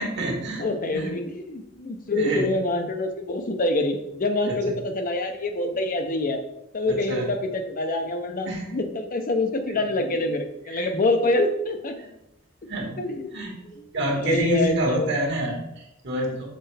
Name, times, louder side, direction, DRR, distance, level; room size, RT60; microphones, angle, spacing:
voice 1, 0.0-1.1 2.1-2.5 4.5-4.8 6.8-7.3 8.4-8.8 9.7-10.1 10.7-11.0 12.0-12.1 12.7-13.0 13.3-13.6 13.9-16.5, right 1 dB, 60° right, 0 dB, 1.5 m, -28 dB
voice 2, 0.6-6.4 6.7-11.9 13.0-13.9 14.2-15.1, left 2 dB, 45° left, 6 dB, 0.6 m, -26 dB
6.7 x 4.4 x 3.3 m, 0.86 s
head